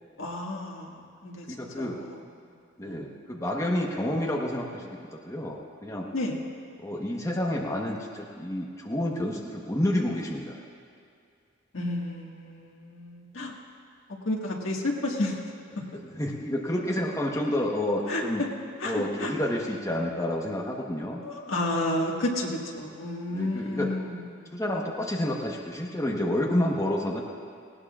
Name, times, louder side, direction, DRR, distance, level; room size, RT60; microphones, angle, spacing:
voice 1, 0.2-1.4 1.7-2.2 2.4-2.5 2.8-3.1 6.1-6.4 11.7-13.6 14.3-15.4 18.1-18.2 18.8-19.3 21.2-24.5, left 1 dB, 75° left, -2 dB, 1.7 m, -31 dB
voice 2, 1.5-2.0 2.8-6.0 6.8-10.6 16.1-18.4 18.8-21.2 23.3-23.9 24.5-27.2, left 1 dB, 15° left, -2 dB, 1.1 m, -29 dB
19.0 x 17.0 x 2.4 m, 2.4 s
head